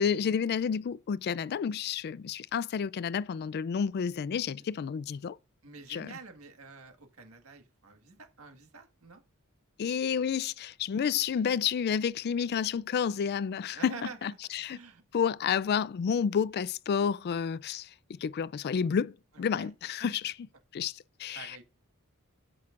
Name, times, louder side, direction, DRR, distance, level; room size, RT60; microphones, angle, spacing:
voice 1, 0.0-5.4 5.9-6.1 9.8-13.9 14.2-14.8 15.1-17.9 18.2-20.3 20.7-21.6, left 7 dB, 50° left, 0.3 m, -30 dB
voice 2, 5.6-9.2 13.7-14.3 14.7-15.0 19.3-19.7 20.0-20.1 21.3-21.6, right 4 dB, 75° right, 1.7 m, -47 dB
14.5 x 5.9 x 2.5 m
head